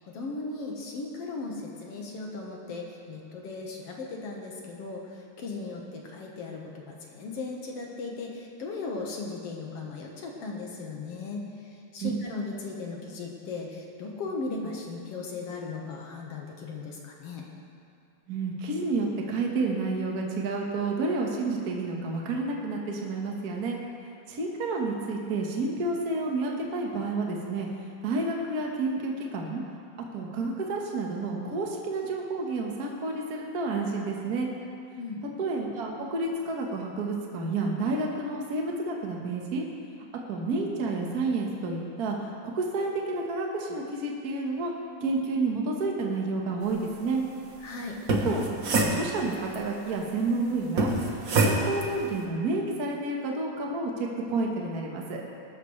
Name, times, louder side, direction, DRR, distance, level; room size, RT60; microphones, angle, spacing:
voice 1, 0.1-5.0 5.4-11.4 11.9-17.5 35.0-35.2 47.6-48.0, left 3 dB, 60° left, -1 dB, 2.2 m, -37 dB
voice 2, 18.3-23.8 24.3-27.7 28.0-29.6 30.1-34.5 35.4-39.6 40.3-42.2 42.4-44.7 45.0-47.2 48.2-50.9 51.3-55.2, right 3 dB, 45° right, 0 dB, 1.3 m, -30 dB
sound 1, 47.9-49.6 50.8-51.9, right 2 dB, 65° right, 0.8 m, -25 dB
20.5 x 12.5 x 3.3 m, 2.4 s
omnidirectional pair, 3.5 m